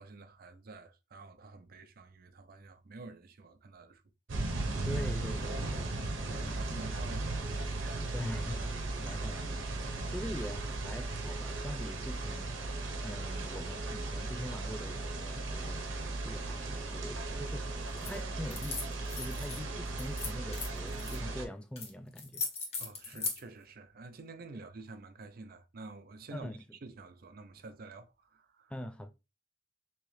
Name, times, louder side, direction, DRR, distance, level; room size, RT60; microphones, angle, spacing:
voice 1, 0.0-4.0 4.3-4.9 6.3-8.0 22.8-26.5 26.8-28.7, right 3 dB, 50° right, 0.5 m, -49 dB
sound 1, 4.3-21.5, right 2 dB, 90° right, 0.8 m, -36 dB
voice 2, 4.9-6.6 8.1-12.5 13.0-22.4 23.1-23.2 26.3-26.6 28.7-29.1, left 1 dB, 5° left, 0.3 m, -43 dB
sound 2, 18.0-18.2 18.5-19.6 20.0-21.2 21.8-21.9 22.2-23.4, left 4 dB, 35° left, 0.8 m, -38 dB
3.6 x 3.0 x 3.2 m
head